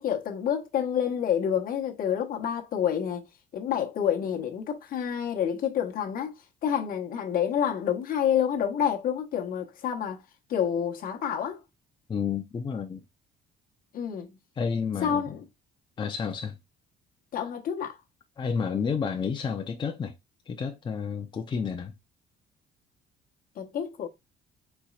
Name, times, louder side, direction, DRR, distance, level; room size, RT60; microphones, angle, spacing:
voice 1, 0.0-3.3 3.5-6.4 6.6-10.2 10.5-11.6 13.9-14.4 15.0-15.4 17.3-18.0 23.6-24.1, left 9 dB, 60° left, 1.1 m, -28 dB
voice 2, 12.1-13.0 14.6-15.3 16.0-16.5 18.4-20.1 20.5-21.9, left 6 dB, 30° left, 0.6 m, -30 dB
4.6 x 4.1 x 2.4 m
cardioid pair, 110°, 17 cm